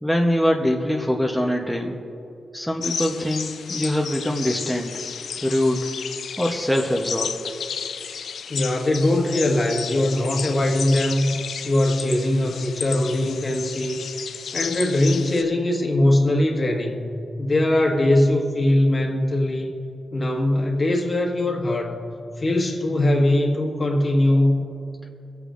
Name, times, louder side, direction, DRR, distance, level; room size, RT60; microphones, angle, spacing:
voice 1, 0.0-2.0 2.5-4.9 5.4-5.9 6.4-7.3, equal, 5° left, 0 dB, 0.9 m, -23 dB
sound 1, 2.8-15.4, left 7 dB, 80° left, 0.4 m, -33 dB
voice 2, 8.5-14.0 14.5-17.1 17.4-19.7 20.1-24.7, left 1 dB, 40° left, 1 dB, 1.5 m, -21 dB
24.0 x 8.3 x 2.5 m, 2.7 s
cardioid pair, 75°, 0 cm